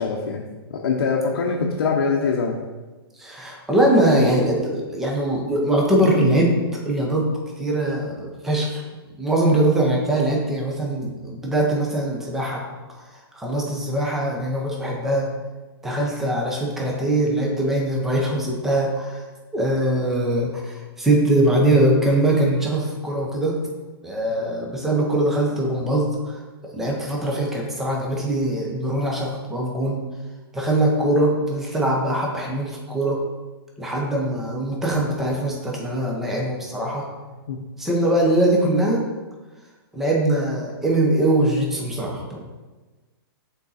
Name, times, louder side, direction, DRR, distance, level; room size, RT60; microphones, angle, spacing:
voice 1, 0.0-2.6 24.4-24.5 37.5-37.6, left 5 dB, 55° left, -1 dB, 0.7 m, -24 dB
voice 2, 3.2-6.5 6.8-7.3 7.6-8.8 9.2-12.6 13.3-15.3 15.8-19.2 19.5-23.5 24.0-26.4 26.7-30.0 30.5-33.2 33.8-37.0 37.8-39.0 39.9-42.4, right 1 dB, 5° right, -2 dB, 0.5 m, -22 dB
6.2 x 4.0 x 4.1 m, 1.2 s
hypercardioid pair, 175°, 13 cm